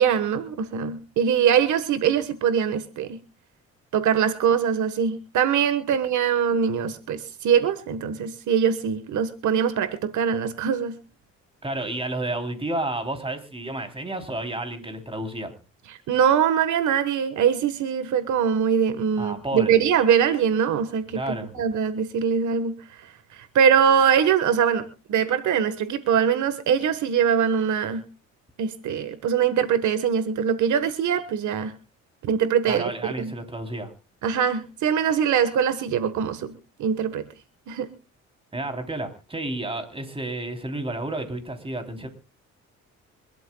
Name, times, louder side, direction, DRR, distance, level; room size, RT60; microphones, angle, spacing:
voice 1, 0.0-3.2 3.9-10.9 15.9-22.7 23.3-28.0 28.6-31.7 32.2-32.9 33.2-33.3 34.2-36.5 36.8-37.2 37.7-37.9, right 7 dB, 75° right, 12 dB, 1.4 m, -22 dB
voice 2, 11.6-15.5 19.2-19.8 21.2-21.6 32.7-33.9 38.5-42.1, right 2 dB, 20° right, 6 dB, 3.4 m, -31 dB
25.5 x 12.5 x 2.3 m, 0.30 s
cardioid pair, 90°, 30 cm